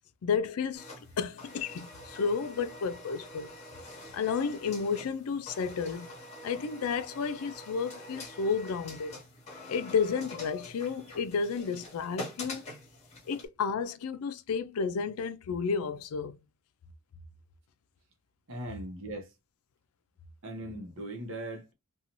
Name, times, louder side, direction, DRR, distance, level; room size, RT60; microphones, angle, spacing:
voice 1, 0.2-0.8 1.2-3.5 4.1-6.1 6.4-9.2 9.7-12.6 13.3-16.4, left 5 dB, 90° left, 0.4 m, -32 dB
sound 1, 0.7-13.5, left 2 dB, 30° left, 0.9 m, -46 dB
voice 2, 18.5-19.3 20.4-21.7, right 1 dB, 60° right, 0.8 m, -39 dB
2.6 x 2.3 x 2.8 m
head